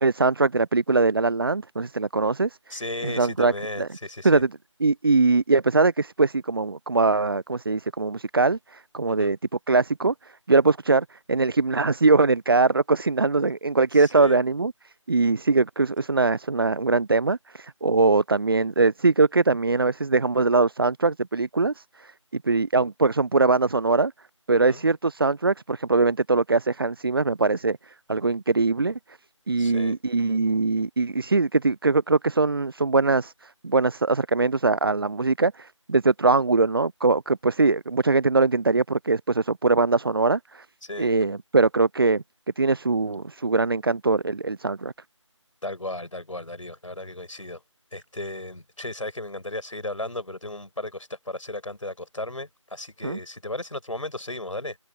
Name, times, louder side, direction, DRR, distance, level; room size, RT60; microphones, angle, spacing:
voice 1, 0.0-2.6 3.0-3.9 4.2-4.5 4.8-9.4 9.7-24.1 24.5-29.0 29.5-40.7 41.0-42.2 42.6-44.9 53.0-53.2, right 3 dB, 45° right, 0.4 m, -22 dB
voice 2, 2.7-4.4 9.2-9.3 13.9-14.4 24.7-24.8 29.6-30.0 40.8-41.1 45.6-47.6 47.9-54.8, left 1 dB, 80° left, 5.6 m, -35 dB
figure-of-eight pair, 165°, 16 cm